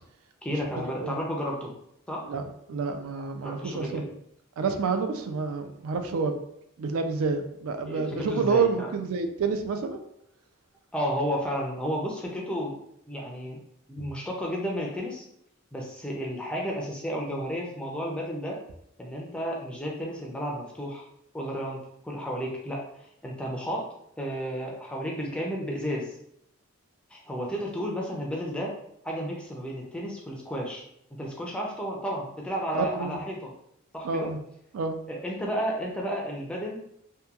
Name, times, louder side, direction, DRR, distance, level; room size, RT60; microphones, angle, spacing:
voice 1, 0.4-1.7 2.1-2.3 3.4-4.0 7.9-8.9 10.9-12.8 13.1-13.6 13.9-15.3 15.7-18.6 19.0-21.0 21.3-23.9 24.2-26.1 27.1-28.7 29.0-30.8 31.2-33.5 33.9-34.3 35.1-36.8, equal, 5° left, -2 dB, 0.3 m, -32 dB
voice 2, 2.7-4.1 4.6-6.4 6.8-10.0 14.0-14.1 32.7-33.2 34.0-34.4 34.7-35.0, right 5 dB, 80° right, 7 dB, 0.4 m, -28 dB
2.8 x 2.2 x 2.3 m, 0.76 s
head